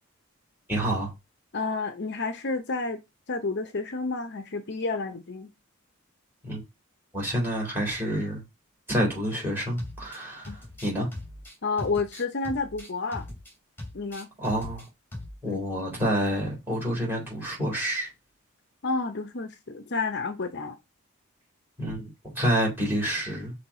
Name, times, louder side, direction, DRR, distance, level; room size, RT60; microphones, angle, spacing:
voice 1, 0.7-1.1 6.4-6.6 7.1-8.4 8.9-11.1 14.4-14.8 15.4-18.1 21.8-23.5, equal, 10° right, 3.6 m, -28 dB
voice 2, 1.5-3.0 3.3-5.5 10.5-10.6 11.6-13.2 13.9-14.3 15.5-15.6 18.8-20.8, left 3 dB, 50° left, 0.7 m, -30 dB
sound 1, 9.8-10.2 10.4-13.5 13.8-14.9 15.1-15.4, left 1 dB, 10° left, 2.7 m, -40 dB
5.8 x 3.4 x 4.8 m
head